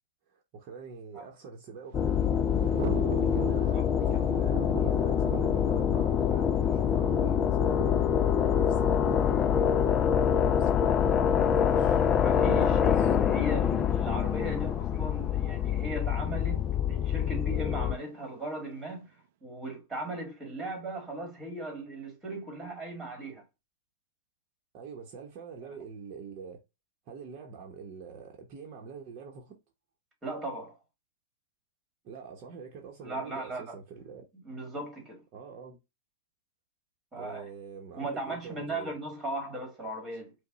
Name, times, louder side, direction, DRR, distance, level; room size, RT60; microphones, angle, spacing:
voice 1, 0.3-2.9 3.2-3.9 4.2-8.0 8.4-12.0 12.6-13.1 24.7-26.6 27.1-29.6 32.0-34.2 35.3-35.8 37.1-38.9, right 5 dB, 35° right, 0.9 m, -45 dB
sound 1, 1.9-18.0, left 8 dB, 20° left, 0.3 m, -25 dB
Thunder, 1.9-18.9, right 11 dB, 50° right, 0.4 m, -44 dB
voice 2, 3.3-3.8 4.1-4.3 12.2-19.1 19.4-23.4 25.6-25.7 30.2-30.8 33.0-33.8 34.4-35.2 37.1-37.5 38.0-40.3, right 1 dB, 10° right, 1.6 m, -38 dB
5.2 x 2.2 x 3.9 m
hypercardioid pair, 145°, 0 cm